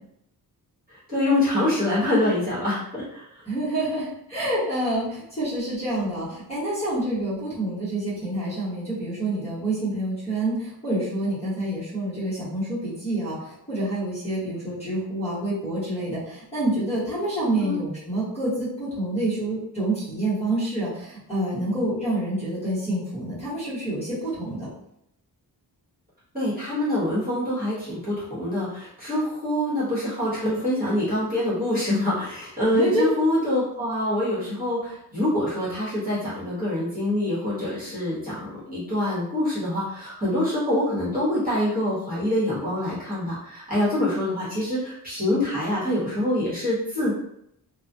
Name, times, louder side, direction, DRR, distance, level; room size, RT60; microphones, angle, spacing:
voice 1, 1.1-3.2 17.6-17.8 26.3-47.2, left 1 dB, 25° right, -10 dB, 1.0 m, -25 dB
voice 2, 3.4-24.7 32.7-33.0, right 1 dB, 15° left, -11 dB, 1.1 m, -27 dB
2.3 x 2.1 x 2.6 m, 0.75 s
wide cardioid pair, 170°, 38 cm